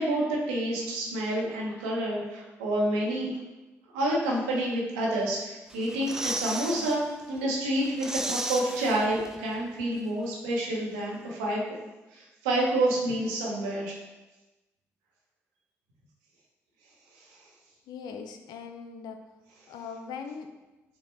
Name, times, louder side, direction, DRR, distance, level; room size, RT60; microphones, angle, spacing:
voice 1, 0.0-3.3 3.9-11.6 12.1-13.9, right 1 dB, 85° right, -3 dB, 0.7 m, -28 dB
sound 1, 5.7-7.0 7.4-7.5 7.8-9.5 9.8-9.9, right 1 dB, 5° right, 0.4 m, -34 dB
voice 2, 17.9-19.2 19.7-20.5, left 6 dB, 75° left, 6 dB, 0.4 m, -40 dB
5.5 x 2.1 x 3.0 m, 1.1 s
hypercardioid pair, 40°, 7 cm